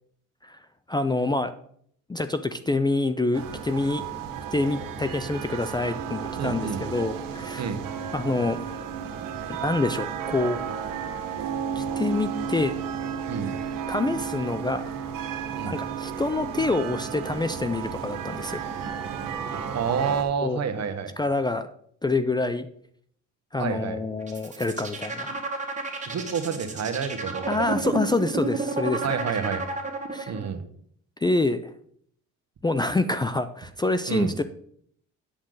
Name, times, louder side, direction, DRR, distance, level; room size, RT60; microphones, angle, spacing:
voice 1, 0.9-1.5 2.1-4.0 4.5-7.7 8.1-8.8 9.5-10.6 11.7-12.7 13.9-14.8 15.6-18.6 20.4-20.6 21.2-21.7 22.0-22.7 23.5-25.4 27.5-29.0 30.1-30.3 31.2-31.7 32.6-34.4, left 2 dB, 15° left, 11 dB, 0.4 m, -26 dB
sound 1, 3.3-20.2, right 7 dB, 85° right, 1.4 m, -33 dB
voice 2, 6.4-6.8 7.6-7.8 13.3-13.5 15.5-15.8 19.7-21.1 23.6-24.0 26.1-27.6 29.0-29.6 30.3-30.6 34.1-34.3, right 6 dB, 55° right, 7 dB, 1.3 m, -29 dB
sound 2, 24.2-30.5, right 3 dB, 20° right, 1.6 m, -31 dB
8.7 x 7.6 x 3.9 m, 0.63 s
cardioid pair, 105°, 32 cm